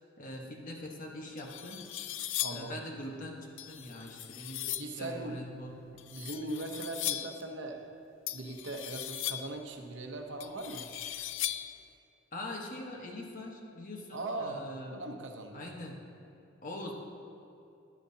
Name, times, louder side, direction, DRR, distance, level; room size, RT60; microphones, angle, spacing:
voice 1, 0.2-1.8 2.5-3.4 3.7-4.7 5.0-5.8 12.3-15.0 15.5-16.0 16.6-16.9, left 1 dB, 45° left, 0 dB, 1.2 m, -42 dB
Sliding Metal Rob Against Copper Pipe, 0.9-1.0 1.4-2.8 3.6-5.0 6.0-7.4 8.3-9.6 10.4-11.8, left 13 dB, 90° left, 0.4 m, -38 dB
voice 2, 2.4-2.9 4.7-5.4 6.1-7.9 8.3-10.9 14.1-15.7, right 2 dB, 70° right, 4 dB, 0.9 m, -40 dB
12.0 x 11.0 x 2.8 m, 2.7 s
head